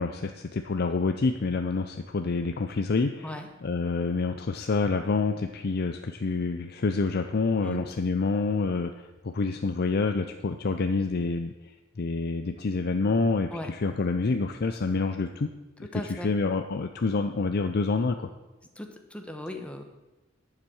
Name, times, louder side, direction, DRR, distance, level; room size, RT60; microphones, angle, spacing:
voice 1, 0.0-11.5 12.0-15.5 15.9-18.3, left 4 dB, 50° left, 6 dB, 0.5 m, -27 dB
voice 2, 15.9-16.3 18.8-19.9, left 1 dB, 5° left, 4 dB, 1.0 m, -37 dB
10.5 x 7.4 x 6.3 m, 1.1 s
head